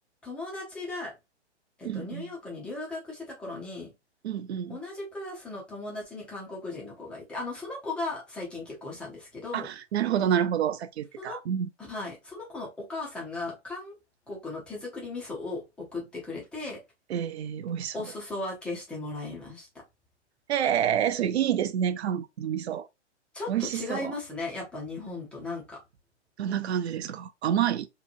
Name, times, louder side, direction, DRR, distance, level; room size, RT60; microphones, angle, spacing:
voice 1, 0.2-1.1 1.8-3.9 4.7-9.7 11.2-11.4 11.8-13.9 14.3-16.8 17.9-19.8 23.3-25.8, left 2 dB, 5° left, 0.4 m, -37 dB
voice 2, 1.8-2.3 4.2-4.8 9.5-11.7 17.1-17.9 20.5-22.9 23.5-24.1 26.4-27.9, right 9 dB, 65° right, 0.5 m, -28 dB
2.9 x 2.1 x 2.4 m
hypercardioid pair, 125°, 35 cm